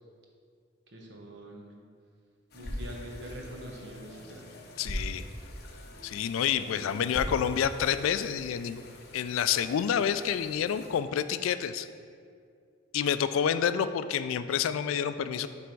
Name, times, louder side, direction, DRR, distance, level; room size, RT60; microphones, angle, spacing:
voice 1, 0.9-1.7 2.5-4.4 6.5-7.0 7.2-7.5, equal, 55° right, -1 dB, 1.0 m, -44 dB
sound 1, 2.4-8.5, equal, 20° left, 1.2 m, -41 dB
sound 2, 2.5-11.0, left 1 dB, 50° left, 0.7 m, -51 dB
voice 2, 4.8-5.2 6.0-8.8 9.1-11.9 12.9-15.5, left 8 dB, 80° left, 12 dB, 0.3 m, -28 dB
7.6 x 3.4 x 5.3 m, 2.3 s
head